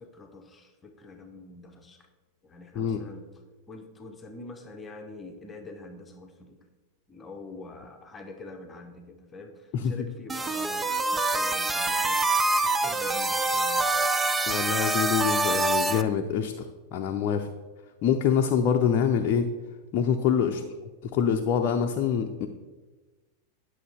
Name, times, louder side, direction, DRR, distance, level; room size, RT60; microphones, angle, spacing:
voice 1, 0.0-2.1 2.4-3.3 3.7-6.7 7.1-12.2 12.6-14.3 20.5-20.8, left 2 dB, 15° left, 4 dB, 1.0 m, -45 dB
sound 1, 10.3-16.0, right 2 dB, 10° right, 0.5 m, -25 dB
voice 2, 14.5-16.7 16.9-17.5 18.0-19.5 19.9-20.6 21.0-22.5, left 7 dB, 40° left, 3 dB, 0.7 m, -25 dB
11.0 x 6.4 x 4.5 m, 1.2 s
figure-of-eight pair, 90°, 0 cm